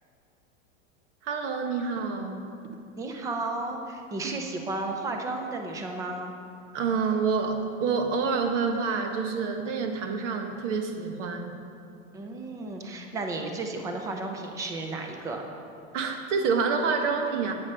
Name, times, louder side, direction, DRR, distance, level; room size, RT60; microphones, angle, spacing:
voice 1, 1.2-2.4 6.7-11.5 15.9-17.5, right 5 dB, 65° right, 4 dB, 1.4 m, -27 dB
voice 2, 3.0-6.3 12.1-15.5, right 2 dB, 10° right, 3 dB, 0.4 m, -33 dB
8.3 x 8.3 x 5.5 m, 2.6 s
supercardioid pair, 155°, 39 cm